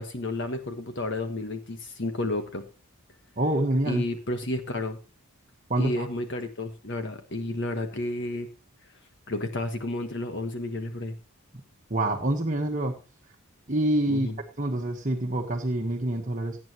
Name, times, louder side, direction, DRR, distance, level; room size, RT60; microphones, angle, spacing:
voice 1, 0.0-2.6 3.9-5.0 5.8-8.5 9.3-11.1 14.1-14.4, left 2 dB, 50° left, 7 dB, 1.4 m, -31 dB
voice 2, 3.4-4.0 5.7-6.1 11.9-13.0 13.7-14.3 14.6-16.6, right 1 dB, 35° right, 1 dB, 1.3 m, -26 dB
17.5 x 8.8 x 3.0 m, 0.31 s
head